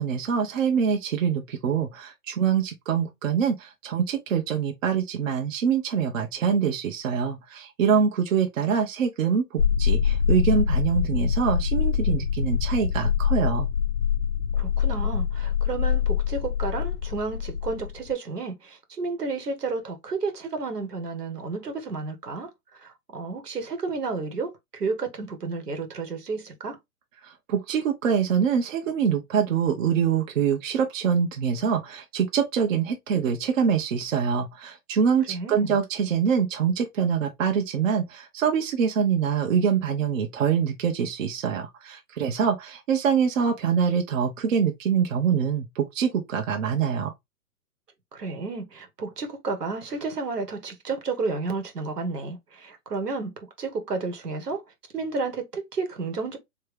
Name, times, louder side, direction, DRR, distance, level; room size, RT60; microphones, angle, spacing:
voice 1, 0.0-13.7 27.2-47.1, right 7 dB, 55° right, 1.1 m, -25 dB
sound 1, 9.6-18.1, left 8 dB, 35° left, 0.4 m, -24 dB
voice 2, 14.6-22.5 22.8-26.8 35.3-35.7 48.1-54.6 54.9-56.4, right 4 dB, 85° right, 1.7 m, -31 dB
3.4 x 3.2 x 3.4 m
hypercardioid pair, 130°, 46 cm